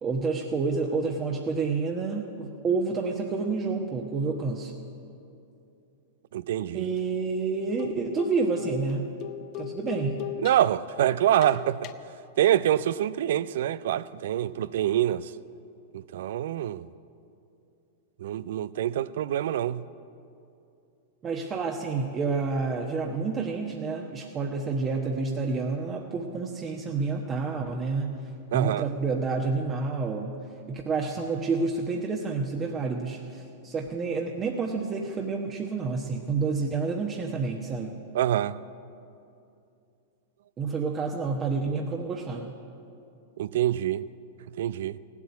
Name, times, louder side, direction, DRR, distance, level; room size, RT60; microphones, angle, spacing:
voice 1, 0.0-4.7 6.7-9.0 9.6-10.2 21.2-28.2 28.5-30.4 30.7-38.0 40.6-42.5, right 4 dB, 25° right, 1.1 m, -29 dB
voice 2, 6.3-6.9 10.4-11.9 12.4-15.3 15.9-16.9 18.2-19.8 28.5-28.8 38.1-38.6 43.4-44.1 44.6-45.0, right 11 dB, 65° right, 0.4 m, -26 dB
sound 1, 6.5-6.7 7.0-7.1 7.8-10.8 11.4-11.9, left 12 dB, 45° left, 0.7 m, -38 dB
16.5 x 8.4 x 9.5 m
hypercardioid pair, 105°, 0 cm